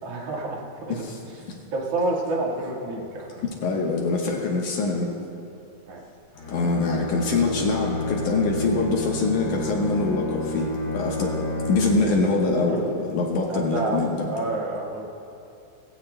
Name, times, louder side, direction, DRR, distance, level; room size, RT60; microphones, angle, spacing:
voice 1, 0.0-1.0 1.7-3.4 5.9-6.0 11.6-11.8 12.7-12.9 13.5-15.0, right 2 dB, 50° right, -2 dB, 2.1 m, -29 dB
voice 2, 0.9-1.6 3.4-5.1 6.5-10.7 10.9-11.4 11.7-14.3, left 3 dB, 65° left, -1 dB, 2.2 m, -24 dB
Bowed string instrument, 6.3-12.3, left 2 dB, 50° left, 4.8 m, -30 dB
20.0 x 16.0 x 2.2 m, 2.7 s
omnidirectional pair, 4.5 m